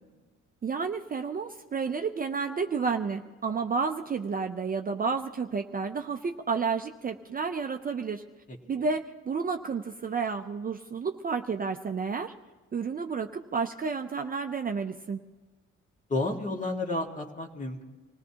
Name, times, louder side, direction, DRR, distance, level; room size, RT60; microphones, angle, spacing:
voice 1, 0.6-8.2 8.7-12.3 12.7-15.2, right 5 dB, 30° right, 5 dB, 0.5 m, -31 dB
voice 2, 16.1-17.8, left 2 dB, 25° left, 2 dB, 1.8 m, -31 dB
25.5 x 17.5 x 2.9 m, 1.4 s
cardioid pair, 90°, 30 cm